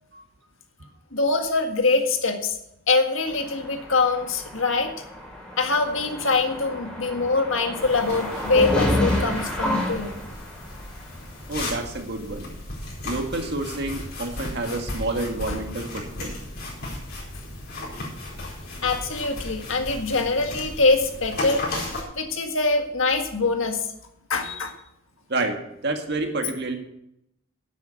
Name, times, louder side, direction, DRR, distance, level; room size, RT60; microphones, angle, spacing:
voice 1, 1.1-2.6 2.9-4.9 5.6-10.1 15.5-15.7 18.8-21.7 21.9-23.9 24.3-24.7, left 3 dB, 65° left, 4 dB, 1.8 m, -23 dB
sound 1, 3.3-10.9, left 1 dB, 5° left, 3.8 m, -29 dB
sound 2, 7.8-22.0, left 2 dB, 45° left, 4.5 m, -35 dB
voice 2, 11.5-12.5 13.0-16.3 25.3-26.8, right 2 dB, 50° right, 4 dB, 1.9 m, -29 dB
10.5 x 8.4 x 7.0 m, 0.80 s
head